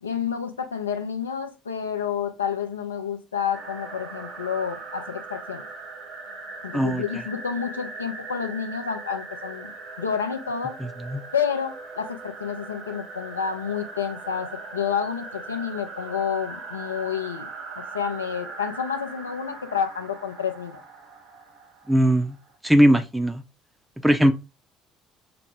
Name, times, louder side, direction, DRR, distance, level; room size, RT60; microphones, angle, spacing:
voice 1, 0.0-5.6 6.6-9.7 10.0-10.8 11.3-17.5 17.8-20.8, left 7 dB, 80° left, 0.5 m, -29 dB
sound 1, 3.5-22.6, right 3 dB, 60° right, 0.9 m, -40 dB
voice 2, 6.7-7.0 10.8-11.2 21.9-22.4 22.6-23.4 24.0-24.3, equal, 5° right, 0.5 m, -19 dB
5.7 x 2.0 x 3.5 m
figure-of-eight pair, 55°, 0 cm